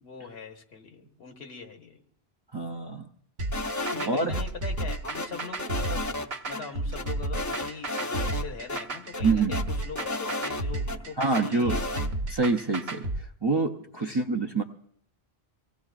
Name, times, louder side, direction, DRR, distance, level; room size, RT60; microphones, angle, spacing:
voice 1, 0.0-2.0 3.9-11.8 14.0-14.2, left 5 dB, 75° left, 4 dB, 1.5 m, -41 dB
voice 2, 2.5-3.1 4.1-4.3 9.2-9.6 11.2-11.8 12.3-14.6, right 3 dB, 35° right, 2 dB, 0.5 m, -26 dB
sound 1, 3.4-13.2, right 2 dB, 70° right, 1.1 m, -32 dB
sound 2, 3.5-4.4 4.8-6.3 6.5-6.6 7.0-8.4 8.7-8.8 9.1-11.0 11.3-12.1, left 2 dB, 25° left, 0.5 m, -33 dB
24.0 x 17.5 x 2.4 m, 0.67 s
omnidirectional pair, 1.1 m